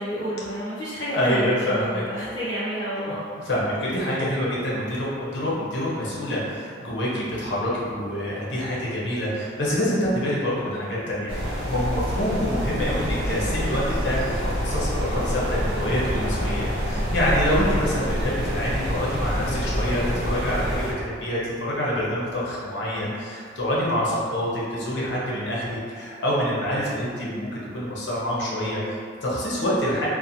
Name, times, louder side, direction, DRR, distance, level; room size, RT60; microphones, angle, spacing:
voice 1, 0.0-3.2, equal, 20° left, -14 dB, 0.6 m, -30 dB
voice 2, 1.1-2.1 3.4-30.1, equal, 60° left, -6 dB, 0.7 m, -26 dB
sound 1, 11.3-20.9, equal, 85° right, 0.7 m, -27 dB
2.9 x 2.1 x 2.6 m, 2.2 s
head